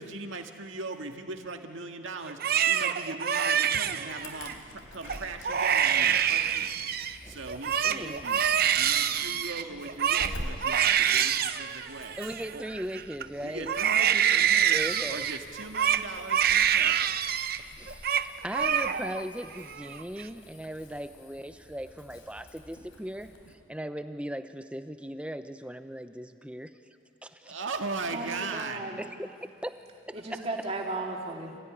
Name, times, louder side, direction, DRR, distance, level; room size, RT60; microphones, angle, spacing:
voice 1, 0.0-6.7 7.0-8.5 8.8-12.2 12.5-12.6 13.4-17.1 27.4-28.9, right 3 dB, 70° right, 4 dB, 1.9 m, -39 dB
Crying sobbing, 2.3-4.5 5.0-5.2 5.4-7.2 7.5-13.2 13.7-17.6 17.9-18.3 18.5-19.2 19.6-20.2, right 9 dB, 45° right, 0.7 m, -26 dB
Insect / Alarm, 4.1-23.5, left 1 dB, 80° left, 3.6 m, -48 dB
voice 2, 7.8-8.2 12.2-13.7 14.7-15.3 17.8-26.7 27.2-27.6 29.0-29.3 29.6-29.8 30.1-30.5, equal, 5° right, 10 dB, 0.7 m, -38 dB
voice 3, 28.1-29.0 30.1-31.5, right 2 dB, 30° right, 0 dB, 2.9 m, -35 dB
27.0 x 17.0 x 10.0 m, 2.3 s
head